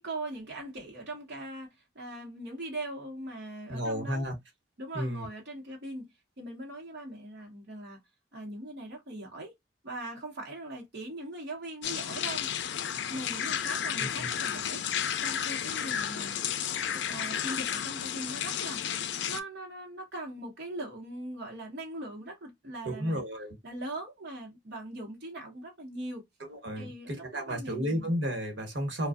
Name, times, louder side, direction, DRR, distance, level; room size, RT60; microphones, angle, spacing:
voice 1, 0.0-4.2 4.8-6.1 6.4-8.0 8.3-9.5 9.8-12.5 13.1-16.4 17.1-23.2 23.6-26.2 26.7-28.1, right 1 dB, 65° right, 0.9 m, -41 dB
voice 2, 3.7-4.3 4.9-5.3 14.0-14.3 22.8-23.6 26.4-29.1, equal, 85° right, 1.1 m, -33 dB
sound 1, 11.8-19.4, left 9 dB, 75° left, 0.4 m, -32 dB
2.5 x 2.2 x 2.3 m
head